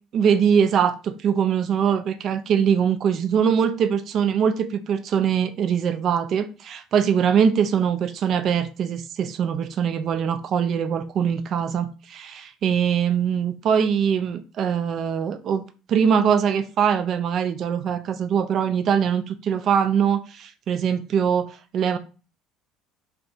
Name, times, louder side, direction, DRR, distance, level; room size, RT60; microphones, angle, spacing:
voice 1, 0.1-22.0, right 7 dB, 50° right, 0.3 m, -22 dB
2.6 x 2.1 x 2.6 m
hypercardioid pair, 65°, 0 cm